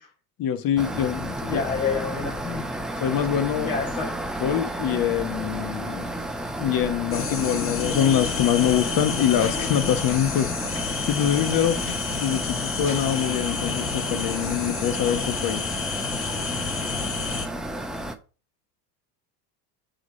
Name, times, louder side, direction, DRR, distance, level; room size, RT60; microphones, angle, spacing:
voice 1, 0.4-1.6 3.0-3.7 4.4-6.1 6.6-15.6, left 10 dB, 45° left, 1.2 m, -24 dB
sound 1, 0.8-18.2, right 1 dB, ahead, 0.7 m, -32 dB
voice 2, 1.4-2.7 3.6-4.2, left 6 dB, 80° left, 3.9 m, -29 dB
sound 2, 7.1-17.5, left 6 dB, 25° left, 1.3 m, -30 dB
6.4 x 4.9 x 5.0 m
hypercardioid pair, 90°, 48 cm